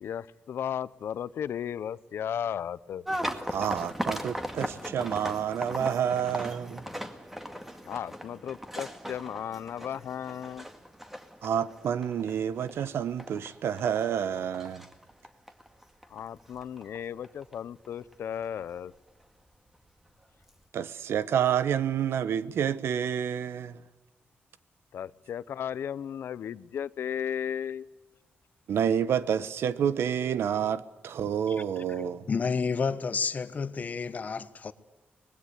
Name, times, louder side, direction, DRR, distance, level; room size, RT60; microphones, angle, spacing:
voice 1, 0.0-3.0 7.8-10.7 16.1-18.9 24.9-27.9, left 9 dB, 75° left, 0.7 m, -35 dB
sound 1, 3.1-18.1 18.4-19.0 19.7-19.8 20.2-20.5, equal, 5° right, 2.1 m, -38 dB
voice 2, 3.5-6.8 11.4-14.8 20.7-23.8 28.7-32.3, right 8 dB, 85° right, 1.1 m, -29 dB
voice 3, 32.0-34.7, left 5 dB, 40° left, 1.2 m, -30 dB
25.0 x 20.5 x 8.2 m
wide cardioid pair, 135°, 4 cm